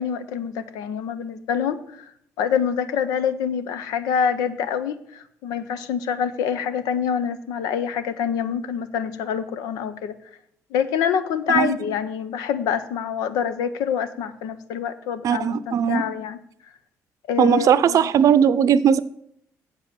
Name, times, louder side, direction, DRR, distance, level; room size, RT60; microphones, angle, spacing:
voice 1, 0.0-2.1 2.4-10.1 10.7-16.4 17.3-18.1, left 7 dB, 90° left, 12 dB, 0.7 m, -26 dB
voice 2, 15.2-16.0 17.4-19.0, right 8 dB, 65° right, 15 dB, 0.6 m, -18 dB
8.1 x 7.3 x 7.3 m, 0.73 s
cardioid pair, 80°, 6 cm